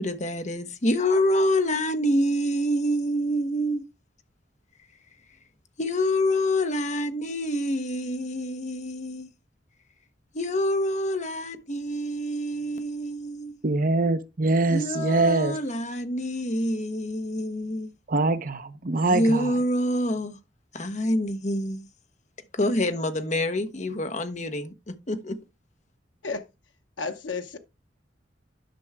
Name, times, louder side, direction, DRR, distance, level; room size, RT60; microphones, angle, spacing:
voice 1, 0.0-3.9 5.8-9.3 10.3-13.6 14.7-17.9 19.1-20.4 20.7-21.9 22.5-25.4, left 1 dB, 40° left, 1.1 m, -26 dB
voice 2, 13.6-15.6 18.1-19.5, right 2 dB, 50° right, 0.8 m, -23 dB
voice 3, 27.0-27.6, left 4 dB, 85° left, 0.7 m, -32 dB
11.5 x 6.1 x 3.5 m
head